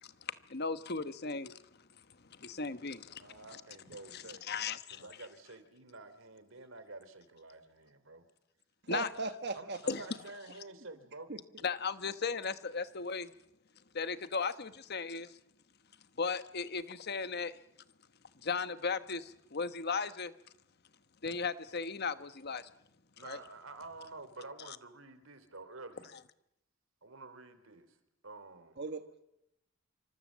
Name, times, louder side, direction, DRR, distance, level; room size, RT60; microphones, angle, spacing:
voice 1, 0.0-1.6 2.3-3.6 4.1-5.0 8.9-9.1 9.9-10.0 11.6-13.3 13.9-15.4 16.2-17.6 18.4-20.3 21.2-22.7 23.2-23.4 24.7-24.8, left 5 dB, 55° left, 1.2 m, -36 dB
voice 2, 3.2-4.4 4.9-8.3 9.5-11.3 23.1-26.1 27.0-28.0 28.2-28.8, right 3 dB, 80° right, 3.2 m, -50 dB
voice 3, 8.9-9.8 28.8-29.2, right 4 dB, 55° right, 1.2 m, -38 dB
27.5 x 25.5 x 7.4 m
head